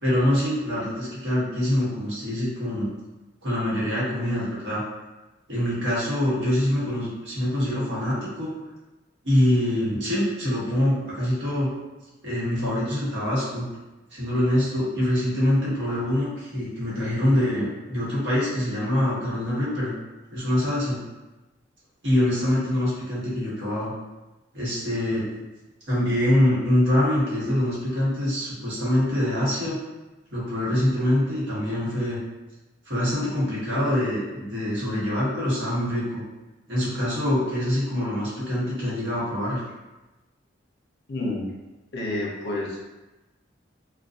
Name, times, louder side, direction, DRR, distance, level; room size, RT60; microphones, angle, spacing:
voice 1, 0.0-2.9 3.4-4.8 5.5-8.5 9.2-11.7 12.2-13.7 14.1-19.9 20.3-21.0 22.0-23.9 24.5-25.2 25.9-29.8 30.3-32.2 32.9-36.2 36.7-39.6, left 1 dB, 65° right, -8 dB, 1.0 m, -24 dB
voice 2, 41.1-41.5 41.9-42.8, left 2 dB, 55° left, -2 dB, 0.6 m, -29 dB
2.5 x 2.1 x 2.4 m, 1.1 s
head